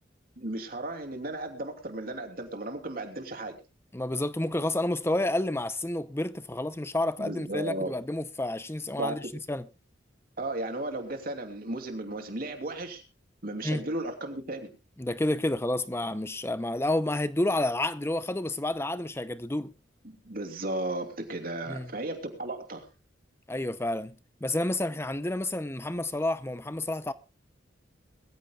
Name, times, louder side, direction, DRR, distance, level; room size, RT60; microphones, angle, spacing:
voice 1, 0.4-3.6 7.2-7.9 9.0-9.2 10.4-13.0 13.4-14.7 20.0-22.8, right 2 dB, 50° right, 2.9 m, -35 dB
voice 2, 3.9-9.7 13.6-13.8 15.0-19.7 21.7-21.9 23.5-24.2 24.4-27.1, left 1 dB, 15° left, 0.7 m, -30 dB
22.0 x 14.5 x 2.4 m
head